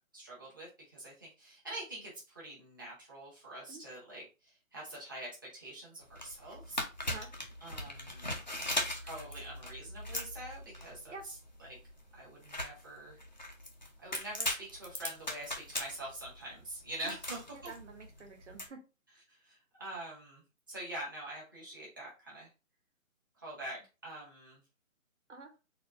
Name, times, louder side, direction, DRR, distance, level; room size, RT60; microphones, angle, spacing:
voice 1, 0.1-6.8 7.6-8.3 9.0-11.8 12.1-13.2 14.0-17.7 19.3-20.4 20.7-22.5 23.4-24.6, right 1 dB, 15° right, -6 dB, 0.9 m, -45 dB
sound 1, 6.0-18.7, left 1 dB, 35° left, 0.6 m, -40 dB
voice 2, 17.5-18.8 25.3-25.5, right 4 dB, 60° right, 4 dB, 1.2 m, -48 dB
4.0 x 2.7 x 3.4 m, 0.30 s
hypercardioid pair, 175°, 41 cm